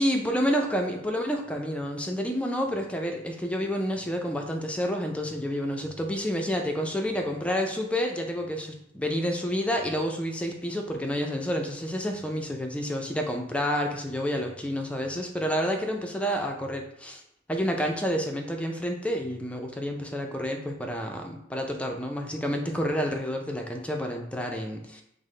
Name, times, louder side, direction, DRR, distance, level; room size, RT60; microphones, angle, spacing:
voice 1, 0.0-17.2 17.5-25.0, equal, 5° left, 3 dB, 0.4 m, -29 dB
5.4 x 2.0 x 3.2 m, 0.75 s
head